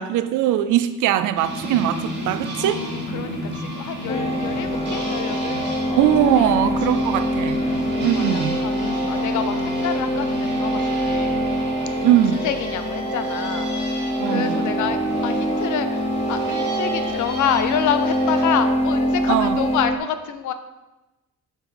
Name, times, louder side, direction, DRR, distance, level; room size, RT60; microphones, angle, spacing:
voice 1, 0.0-2.8 6.0-7.6 8.0-8.6 12.0-12.4 14.2-14.7 19.3-19.6, right 11 dB, 80° right, 12 dB, 0.5 m, -21 dB
sound 1, 1.4-18.5, right 1 dB, 35° right, 2.3 m, -32 dB
voice 2, 2.6-6.0 6.3-6.5 6.9-7.0 7.7-11.5 12.1-20.5, left 8 dB, 75° left, 10 dB, 0.7 m, -28 dB
sound 2, 4.1-20.0, equal, 20° left, 0.6 m, -24 dB
5.6 x 4.7 x 5.2 m, 1.0 s
cardioid pair, 90°, 30 cm